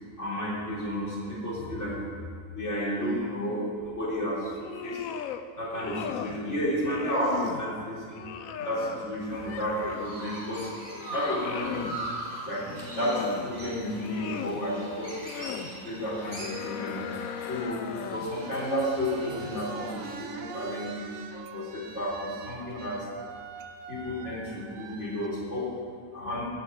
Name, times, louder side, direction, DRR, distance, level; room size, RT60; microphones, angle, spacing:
voice 1, 0.2-2.0 2.5-4.5 4.8-5.0 5.6-8.2 8.6-10.7 11.1-11.9 12.5-12.7 12.9-15.1 15.7-17.0 17.5-17.8 18.1-21.1 21.5-23.0 23.9-25.7 26.1-26.5, equal, 60° left, -7 dB, 3.9 m, -32 dB
sound 1, 4.5-5.4 5.7-6.4 6.8-7.7 8.1-10.2 10.6-12.0 12.7-13.5 13.9-14.6 15.1-15.7 16.2-18.4, left 8 dB, 85° left, 1.1 m, -37 dB
Chirp tweet, 9.5-20.1, right 1 dB, 30° right, 3.9 m, -41 dB
sound 2, 18.0-25.3, right 5 dB, 80° right, 1.2 m, -43 dB
13.5 x 6.1 x 8.9 m, 2.1 s
omnidirectional pair, 1.4 m